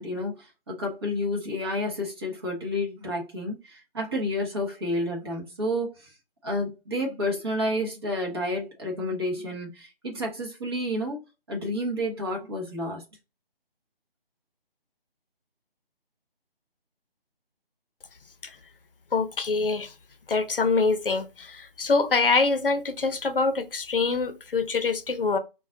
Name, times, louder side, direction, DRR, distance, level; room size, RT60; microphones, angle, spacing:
voice 1, 0.0-6.1 6.4-11.2 11.5-13.0, left 1 dB, 25° right, 0.8 m, -30 dB
voice 2, 19.1-19.9 20.3-25.4, left 4 dB, 65° left, 0.6 m, -25 dB
4.1 x 2.3 x 2.5 m
figure-of-eight pair, 155°, 30 cm